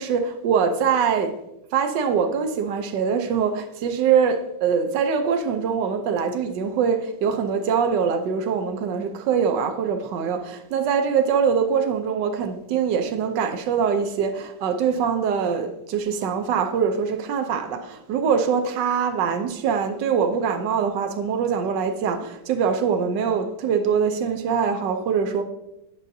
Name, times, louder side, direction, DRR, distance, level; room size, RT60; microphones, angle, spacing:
voice 1, 0.0-1.4 1.7-25.4, right 6 dB, 70° right, 1.2 m, -23 dB
9.1 x 6.5 x 2.6 m
omnidirectional pair, 2.1 m